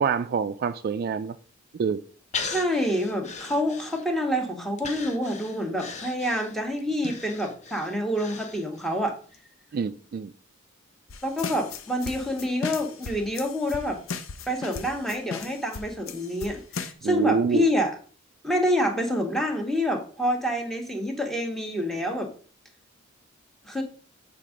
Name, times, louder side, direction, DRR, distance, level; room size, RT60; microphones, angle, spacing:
voice 1, 0.0-1.4 1.8-2.0 9.7-10.3 17.0-17.6, right 6 dB, 50° right, 0.3 m, -26 dB
Breathing, 2.3-4.3 4.8-9.0 9.3-9.4, left 5 dB, 35° left, 0.8 m, -38 dB
voice 2, 2.4-9.2 11.2-14.0 14.5-17.9 18.4-22.3 23.6-23.8, equal, ahead, 1.2 m, -27 dB
sound 1, 11.1-16.9, left 5 dB, 80° left, 0.7 m, -37 dB
7.6 x 3.6 x 5.0 m
head